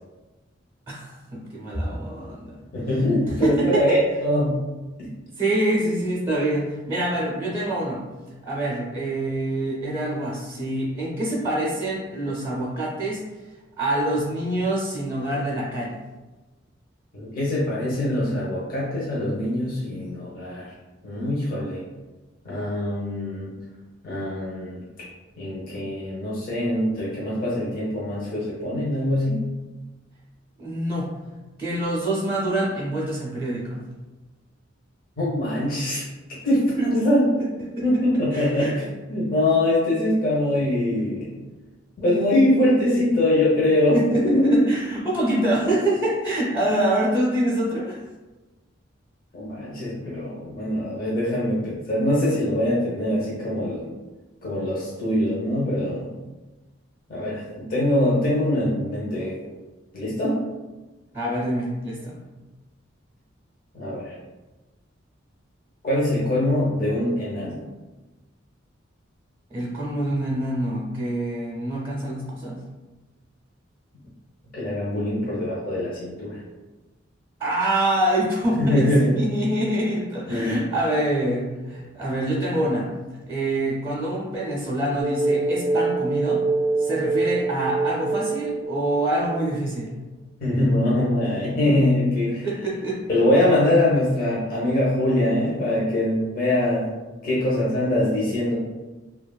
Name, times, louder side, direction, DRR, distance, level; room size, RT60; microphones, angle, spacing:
voice 1, 0.9-2.6 3.4-4.0 5.3-8.0 8.4-13.2 13.8-16.0 30.6-31.1 31.6-33.8 36.8-36.9 37.8-37.9 38.3-38.7 43.9-48.0 61.1-62.2 69.5-72.6 77.4-78.9 79.1-82.9 83.3-86.4 86.8-89.9 92.4-93.0, right 1 dB, 25° right, -7 dB, 0.5 m, -25 dB
voice 2, 2.7-4.6 5.0-5.1 17.1-20.7 21.0-21.8 22.4-23.5 24.0-24.8 25.4-29.4 35.2-36.0 36.4-37.3 37.8-41.3 42.0-44.0 44.2-44.6 49.3-53.9 54.4-56.1 57.1-59.4 59.9-60.4 63.7-64.1 65.8-67.6 74.5-76.4 78.6-79.2 80.3-80.6 90.4-92.5 93.1-96.9 97.2-98.5, left 1 dB, 45° left, -7 dB, 0.7 m, -23 dB
sound 1, 85.0-89.7, right 3 dB, 85° right, 0.4 m, -25 dB
2.8 x 2.3 x 2.2 m, 1.2 s
head